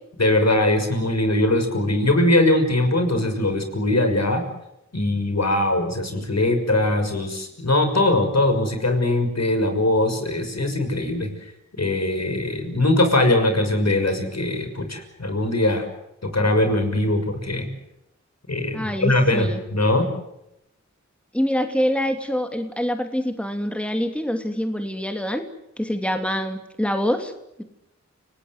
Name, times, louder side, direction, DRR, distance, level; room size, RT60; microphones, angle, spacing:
voice 1, 0.2-4.4 4.9-11.3 11.8-15.8 16.2-17.7 18.5-20.1, left 1 dB, 60° left, 6 dB, 6.2 m, -21 dB
voice 2, 18.7-19.6 21.3-25.4 25.8-27.3, equal, 5° left, 5 dB, 2.8 m, -25 dB
30.0 x 19.0 x 8.1 m, 0.84 s
wide cardioid pair, 50°, 30 cm